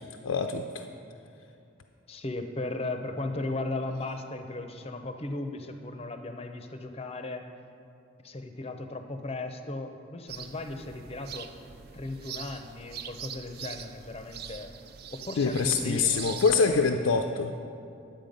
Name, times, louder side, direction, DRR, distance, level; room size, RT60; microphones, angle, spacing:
voice 1, 0.2-0.9 15.4-17.5, left 4 dB, 80° left, 4 dB, 0.5 m, -25 dB
voice 2, 2.1-7.5 8.2-11.5 11.9-14.7 15.1-16.3, left 2 dB, 30° left, 6 dB, 0.6 m, -36 dB
sound 1, 10.3-16.9, right 7 dB, 50° right, 0.4 m, -43 dB
11.0 x 7.8 x 5.2 m, 2.7 s
head